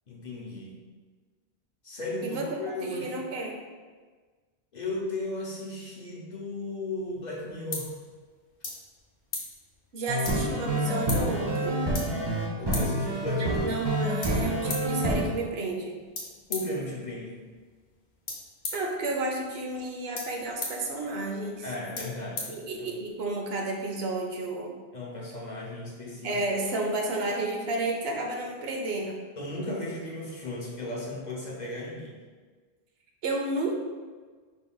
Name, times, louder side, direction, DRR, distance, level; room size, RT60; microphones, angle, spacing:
voice 1, 0.1-0.8 1.8-3.2 4.7-7.9 12.6-13.5 16.5-17.5 21.6-22.5 22.8-22.9 24.9-26.4 29.4-32.2, left 2 dB, 50° left, -4 dB, 0.8 m, -35 dB
voice 2, 2.8-3.5 9.9-11.8 13.4-16.0 18.7-21.6 22.5-24.7 26.2-29.2 33.2-33.8, right 2 dB, 70° right, 1 dB, 0.8 m, -31 dB
sound 1, 7.0-23.2, left 3 dB, 80° left, 1.2 m, -42 dB
sound 2, 10.1-15.3, right 1 dB, 30° right, 0.5 m, -28 dB
4.6 x 3.7 x 2.3 m, 1.4 s
omnidirectional pair, 1.1 m